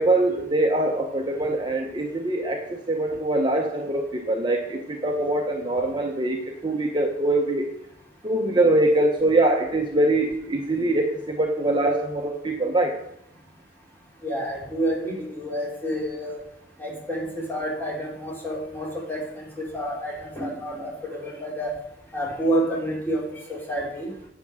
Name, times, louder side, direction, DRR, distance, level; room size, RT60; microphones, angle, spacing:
voice 1, 0.0-7.7 8.2-13.0, right 2 dB, 25° right, 2 dB, 0.8 m, -23 dB
voice 2, 14.2-16.4 16.8-21.7 22.1-23.2 23.5-24.1, right 1 dB, 10° left, -4 dB, 3.2 m, -29 dB
8.5 x 6.0 x 7.5 m, 0.75 s
head